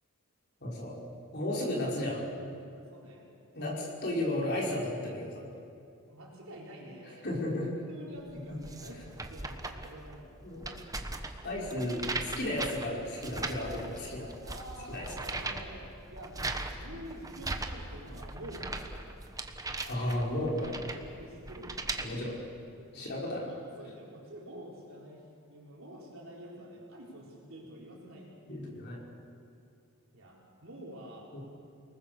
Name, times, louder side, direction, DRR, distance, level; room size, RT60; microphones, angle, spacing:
voice 1, 0.6-1.0 1.3-2.3 3.5-5.5 7.2-7.7 8.5-8.6 10.4-10.7 11.4-14.3 14.9-15.1 19.8-20.7 22.0-22.4 22.9-23.5 28.5-29.0 31.3-31.4, left 1 dB, 50° left, -4 dB, 5.5 m, -34 dB
voice 2, 2.7-3.3 6.1-9.0 9.3-10.4 14.4-19.2 20.5-21.8 22.9-28.3 30.1-31.4, right 1 dB, 65° right, -3 dB, 4.3 m, -48 dB
sound 1, 8.3-22.1, right 2 dB, 15° right, 1.2 m, -39 dB
29.5 x 20.0 x 6.9 m, 2.5 s
head